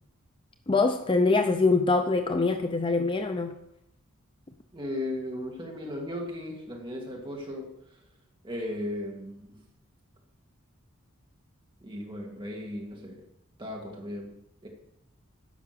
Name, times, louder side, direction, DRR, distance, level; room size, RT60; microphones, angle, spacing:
voice 1, 0.7-3.6, left 3 dB, 25° left, 7 dB, 0.5 m, -24 dB
voice 2, 4.7-8.0 8.4-9.6 11.8-13.3 13.6-14.7, left 1 dB, 25° right, 0 dB, 2.1 m, -36 dB
10.0 x 6.0 x 6.7 m, 0.79 s
head